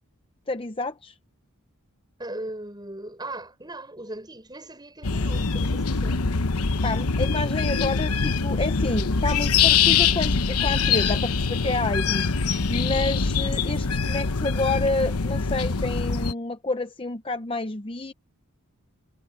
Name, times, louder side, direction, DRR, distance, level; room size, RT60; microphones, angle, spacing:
voice 1, 0.5-1.1 6.8-12.2 12.7-18.1, left 2 dB, 25° left, 0.7 m, -29 dB
voice 2, 2.2-6.3, right 1 dB, 20° right, 6.8 m, -38 dB
sound 1, 5.0-16.3, left 5 dB, 90° left, 1.0 m, -23 dB
head